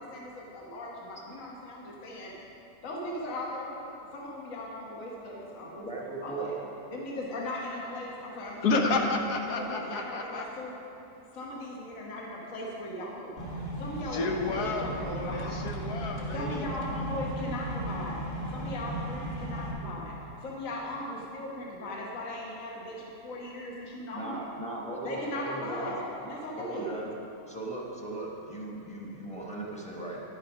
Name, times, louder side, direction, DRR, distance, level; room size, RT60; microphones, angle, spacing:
voice 1, 0.0-2.3 2.8-3.8 4.1-5.9 6.2-6.6 6.9-9.0 9.5-10.7 11.3-13.5 13.8-15.6 16.3-18.2 18.5-20.1 20.4-24.5 25.0-27.0, left 1 dB, 55° left, -3 dB, 1.7 m, -38 dB
voice 2, 5.8-6.6 24.1-25.9 26.6-27.1 27.5-30.2, right 2 dB, 5° left, -4 dB, 1.2 m, -38 dB
voice 3, 8.6-10.4 14.1-16.6, left 3 dB, 70° left, 3 dB, 1.4 m, -30 dB
sound 1, 13.4-19.7, right 1 dB, 30° left, 1.4 m, -36 dB
10.5 x 9.0 x 5.0 m, 2.9 s
omnidirectional pair, 1.8 m